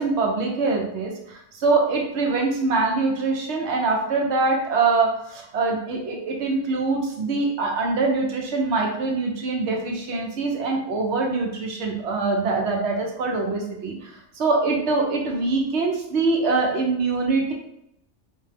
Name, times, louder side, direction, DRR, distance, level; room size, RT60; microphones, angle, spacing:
voice 1, 0.0-14.1 14.4-17.5, right 3 dB, 70° right, 0 dB, 1.0 m, -24 dB
4.3 x 2.2 x 3.3 m, 0.79 s
omnidirectional pair, 1.3 m